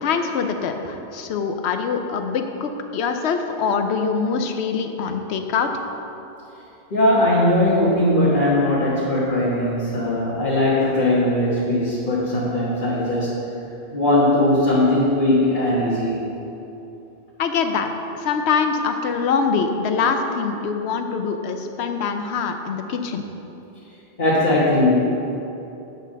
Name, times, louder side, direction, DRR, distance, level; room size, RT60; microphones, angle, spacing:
voice 1, 0.0-5.7 17.4-17.9 18.2-23.3, left 5 dB, 75° left, 6 dB, 0.9 m, -24 dB
voice 2, 6.9-13.4 13.9-16.2 24.2-25.0, left 1 dB, 45° left, -9 dB, 1.4 m, -19 dB
8.6 x 4.0 x 6.3 m, 3.0 s
omnidirectional pair, 1.1 m